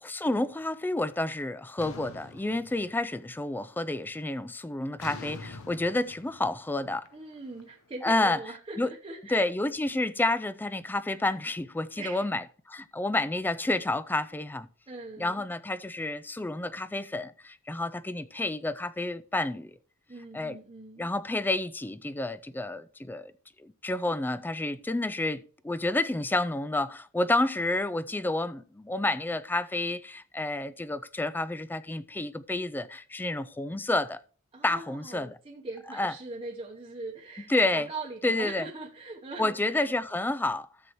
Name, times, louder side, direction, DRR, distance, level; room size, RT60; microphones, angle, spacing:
voice 1, 0.0-7.1 8.0-8.4 8.8-8.9 9.3-14.7 15.2-19.7 20.3-20.6 21.0-23.3 23.6-34.2 34.6-35.4 36.0-36.1 37.5-37.9 38.2-38.7 39.4-40.7, left 2 dB, 10° left, 0.3 m, -30 dB
sound 1, 1.8-3.3 3.7-4.1 5.0-8.1, left 3 dB, 85° left, 0.9 m, -46 dB
voice 2, 7.1-9.5 12.0-12.3 14.9-15.5 20.1-21.1 34.5-39.9, right 3 dB, 25° right, 0.9 m, -41 dB
13.0 x 7.6 x 3.0 m
head